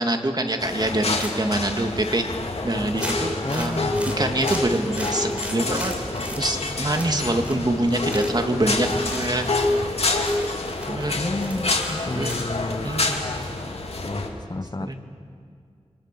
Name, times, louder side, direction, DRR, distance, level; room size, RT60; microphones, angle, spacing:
voice 1, 0.0-2.2 2.6-3.8 4.2-5.9 6.3-9.4 10.9-11.2 12.1-12.4 12.8-13.2 14.8-15.0, right 1 dB, 40° right, 5 dB, 2.3 m, -25 dB
sound 1, 0.6-14.3, left 2 dB, 65° left, 2.6 m, -27 dB
sound 2, 1.1-1.6 2.1-2.2 2.4-2.5 3.0-6.4 6.9-7.7 7.9-8.5 9.0-9.3 9.8-9.9 10.1-12.5, equal, 10° right, 4.5 m, -37 dB
voice 2, 3.4-4.3 11.2-12.9 14.0-15.0, left 2 dB, 40° left, 11 dB, 1.0 m, -30 dB
29.0 x 24.5 x 6.9 m, 2.2 s
wide cardioid pair, 50°, 11 cm